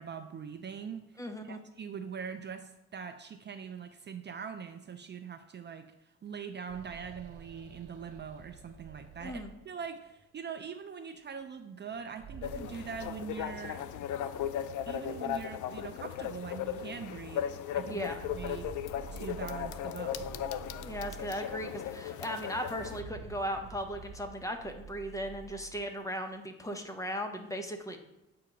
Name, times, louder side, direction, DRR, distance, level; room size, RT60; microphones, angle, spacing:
voice 1, 0.0-13.8 14.9-18.1 18.3-18.7 19.1-20.2, right 7 dB, 35° right, 7 dB, 0.4 m, -42 dB
voice 2, 1.2-1.6 9.2-9.5 17.9-18.2 20.8-28.0, equal, 10° left, 5 dB, 0.8 m, -37 dB
sound 1, 6.3-10.1 11.9-14.1 14.4-14.5 15.4-15.5 16.0-16.1 17.7-21.9 22.6-26.0, right 5 dB, 55° right, 0.9 m, -49 dB
sound 2, 12.4-23.0, left 9 dB, 80° left, 0.5 m, -37 dB
7.7 x 2.8 x 5.0 m, 0.93 s
cardioid pair, 90°, 30 cm